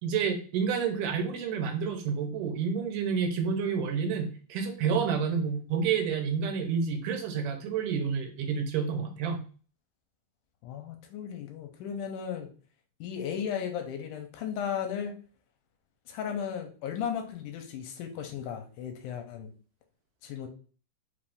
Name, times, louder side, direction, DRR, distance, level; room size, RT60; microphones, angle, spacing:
voice 1, 0.0-9.4, right 6 dB, 90° right, 4 dB, 2.4 m, -29 dB
voice 2, 10.6-12.5 13.0-15.1 16.1-19.5 20.2-20.5, left 8 dB, 85° left, 5 dB, 2.2 m, -35 dB
5.1 x 2.6 x 3.5 m, 0.40 s
omnidirectional pair, 3.7 m